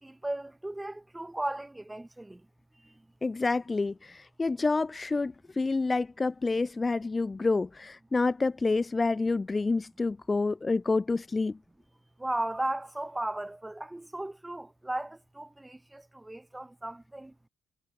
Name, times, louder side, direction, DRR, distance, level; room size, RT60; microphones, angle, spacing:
voice 1, 0.0-2.4 2.8-3.0 12.2-17.3, right 1 dB, 10° right, 5.8 m, -36 dB
voice 2, 3.2-11.6, left 3 dB, 25° left, 2.3 m, -28 dB
cardioid pair, 90°, 0 cm